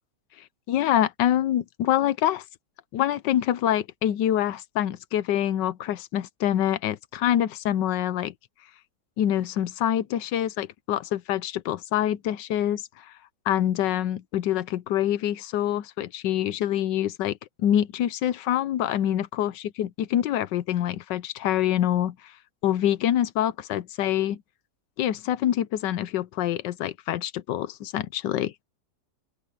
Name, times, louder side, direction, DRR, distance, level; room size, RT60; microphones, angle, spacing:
voice 1, 0.7-2.4 2.9-8.3 9.2-13.1 13.5-22.1 22.6-24.4 25.0-28.6, left 11 dB, 90° left, 1.4 m, -26 dB
open air
omnidirectional pair, 1.9 m